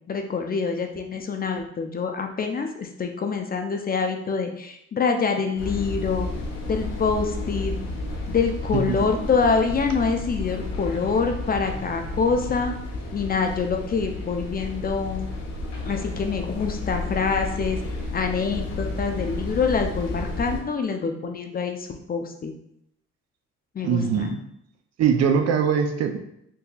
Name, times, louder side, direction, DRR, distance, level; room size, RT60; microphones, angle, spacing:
voice 1, 0.1-6.3 6.7-7.7 8.3-12.8 13.1-15.3 15.8-17.8 18.1-22.5 23.7-24.3, left 5 dB, 30° left, 4 dB, 0.4 m, -25 dB
sound 1, 5.6-20.6, left 2 dB, 80° left, 1.0 m, -32 dB
voice 2, 23.8-24.4 25.0-26.2, right 7 dB, 60° right, 6 dB, 0.5 m, -22 dB
4.0 x 2.7 x 2.3 m, 0.74 s
cardioid pair, 90°, 30 cm